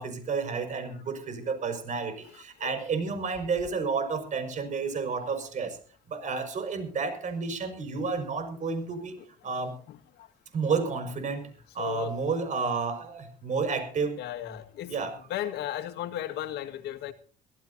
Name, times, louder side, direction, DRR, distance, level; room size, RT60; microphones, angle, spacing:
voice 1, 0.0-2.1 2.4-5.7 6.1-9.1 9.4-9.7 10.5-11.5 11.8-14.2 14.9-15.1, right 5 dB, 45° right, 8 dB, 5.9 m, -31 dB
voice 2, 11.8-12.2 14.2-15.0 15.3-17.1, left 12 dB, 80° left, 10 dB, 1.9 m, -35 dB
24.5 x 15.5 x 2.8 m, 0.42 s
cardioid pair, 110°, 17 cm